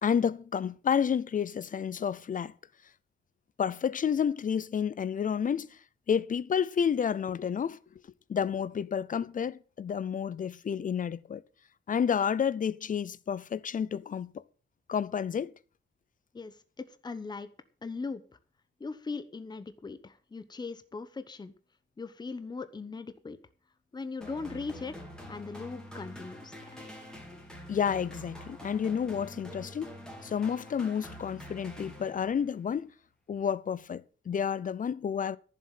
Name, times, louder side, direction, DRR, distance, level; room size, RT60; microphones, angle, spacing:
voice 1, 0.0-2.5 3.6-5.8 6.1-7.8 8.3-11.4 11.9-14.4 14.9-15.5 27.7-29.9 30.2-32.9 33.3-35.4, left 7 dB, 45° left, 0.5 m, -30 dB
voice 2, 16.3-17.5 17.8-18.2 18.8-21.5 22.0-23.4 23.9-24.9 25.3-26.9, left 4 dB, 20° left, 0.9 m, -39 dB
sound 1, 24.2-32.5, equal, 5° left, 3.3 m, -46 dB
14.5 x 7.4 x 7.5 m
wide cardioid pair, 180°, 20 cm